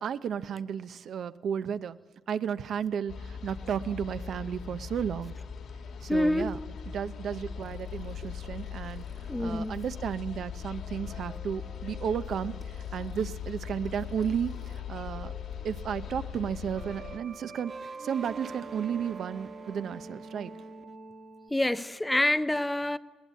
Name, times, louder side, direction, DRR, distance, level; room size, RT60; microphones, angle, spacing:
voice 1, 0.0-2.0 2.3-5.3 6.0-6.6 6.9-9.0 9.4-15.3 15.6-20.5, right 8 dB, 65° right, 0.7 m, -33 dB
sound 1, 3.1-17.2, left 7 dB, 70° left, 2.1 m, -40 dB
voice 2, 6.1-6.5 9.3-9.8 21.5-23.0, left 1 dB, 10° left, 0.6 m, -26 dB
sound 2, 7.6-14.8 15.1-21.5, right 3 dB, 45° right, 1.6 m, -47 dB
20.0 x 18.5 x 8.3 m
cardioid pair, 90°, 0 cm